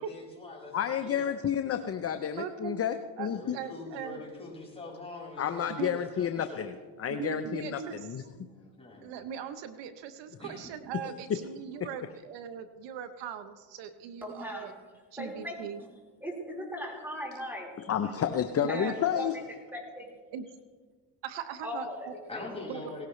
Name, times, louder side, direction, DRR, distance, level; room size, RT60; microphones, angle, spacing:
voice 1, 0.0-1.3 3.3-6.7 8.5-9.1 10.4-10.7 22.3-23.1, left 2 dB, 15° left, -4 dB, 5.7 m, -44 dB
voice 2, 0.7-3.6 5.4-6.7 7.0-8.2 17.8-19.4, left 8 dB, 35° left, 9 dB, 0.7 m, -30 dB
voice 3, 2.4-2.8 3.2-4.2 5.7-6.0 7.1-8.1 8.4-8.5 9.0-14.7 15.1-15.8 18.7-18.9 20.3-20.5 21.2-22.1 22.6-22.9, right 8 dB, 75° right, 10 dB, 1.0 m, -40 dB
voice 4, 14.2-14.7 15.2-15.9 16.2-17.7 18.3-18.4 18.7-19.4 19.7-20.1 21.6-22.5, left 1 dB, 5° right, -2 dB, 4.4 m, -39 dB
18.0 x 17.0 x 3.2 m, 1.4 s
cardioid pair, 95°, 44 cm